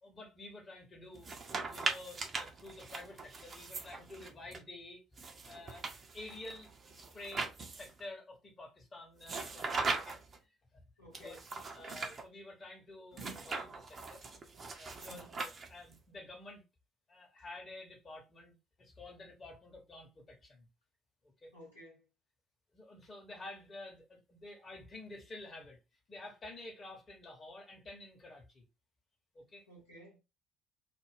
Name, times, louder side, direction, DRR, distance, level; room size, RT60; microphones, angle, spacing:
voice 1, 0.0-10.8 11.1-11.4 11.7-14.2 14.8-16.6 17.1-20.7 21.2-21.5 22.7-25.8 26.1-28.6 29.3-29.7, left 2 dB, 30° left, 0.9 m, -50 dB
sound 1, 1.1-4.6 5.2-8.0 9.2-10.4 11.1-12.2 13.1-16.0, right 4 dB, 35° right, 0.6 m, -40 dB
voice 2, 11.0-11.4 15.1-15.3 21.5-22.0 29.7-30.2, equal, 85° left, 1.0 m, -53 dB
2.4 x 2.2 x 3.3 m
figure-of-eight pair, 50°, 0 cm